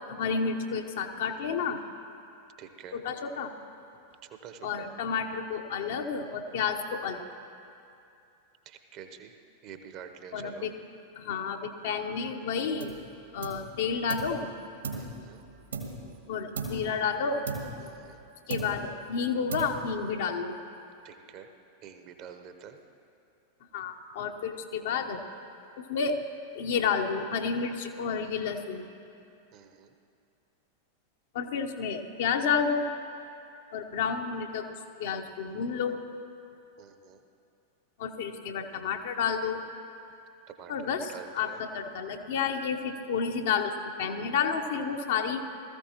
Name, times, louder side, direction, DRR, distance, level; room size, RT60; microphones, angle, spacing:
voice 1, 0.1-1.8 2.9-3.5 4.6-7.3 10.3-10.7 11.2-12.9 13.3-14.5 16.3-17.4 18.5-20.5 23.7-25.2 25.8-26.2 26.5-28.9 31.3-32.9 33.7-34.6 35.0-36.0 38.0-39.6 40.7-45.4, left 6 dB, 55° left, 5 dB, 0.8 m, -30 dB
voice 2, 2.6-3.0 4.2-4.8 8.7-9.3 9.6-10.7 13.5-13.7 14.9-15.4 17.8-18.2 21.0-21.5 21.8-22.8 29.5-29.9 36.8-37.2 40.6-41.6, right 8 dB, 40° right, 7 dB, 0.9 m, -47 dB
sound 1, 12.8-13.1 13.4-14.4 14.8-16.2 16.5-17.0 17.5-18.2 18.5-19.0 19.5-20.1, right 3 dB, 70° right, 1.8 m, -37 dB
19.0 x 14.0 x 2.9 m, 2.6 s
figure-of-eight pair, 90°, 0 cm